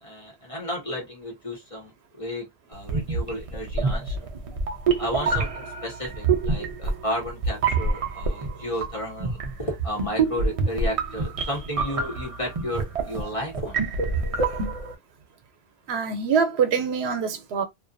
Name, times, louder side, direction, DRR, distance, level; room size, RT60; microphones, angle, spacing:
voice 1, 0.0-4.3 5.0-13.8, equal, 35° left, 1.0 m, -33 dB
sound 1, 2.8-14.9, right 4 dB, 50° right, 0.4 m, -27 dB
voice 2, 14.3-14.7 15.9-17.6, right 6 dB, 80° right, 0.9 m, -25 dB
2.4 x 2.3 x 2.5 m
omnidirectional pair, 1.1 m